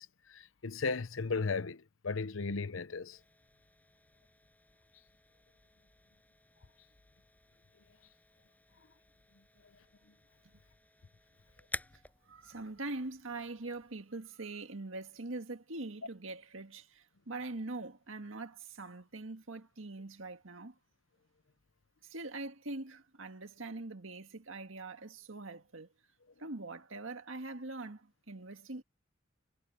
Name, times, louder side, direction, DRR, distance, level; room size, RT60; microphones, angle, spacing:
voice 1, 0.0-3.2, left 4 dB, 80° left, 0.8 m, -36 dB
sound 1, 3.1-14.7, left 2 dB, 10° left, 6.6 m, -52 dB
voice 2, 12.3-20.7 22.0-25.9 26.4-28.8, right 2 dB, 85° right, 1.8 m, -43 dB
head